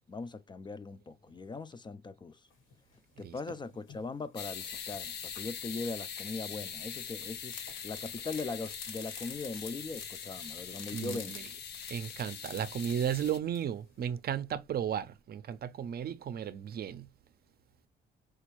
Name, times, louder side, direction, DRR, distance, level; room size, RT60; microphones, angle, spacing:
voice 1, 0.1-2.4 3.2-11.4, left 3 dB, 25° left, 0.3 m, -40 dB
sound 1, 2.5-4.0 4.5-6.7 7.4-14.0, left 5 dB, 80° left, 1.3 m, -49 dB
sound 2, 4.4-13.4, left 7 dB, 60° left, 0.7 m, -42 dB
voice 2, 10.9-11.4 11.9-17.1, right 9 dB, 50° right, 0.5 m, -34 dB
4.2 x 2.4 x 2.9 m
cardioid pair, 90°, 20 cm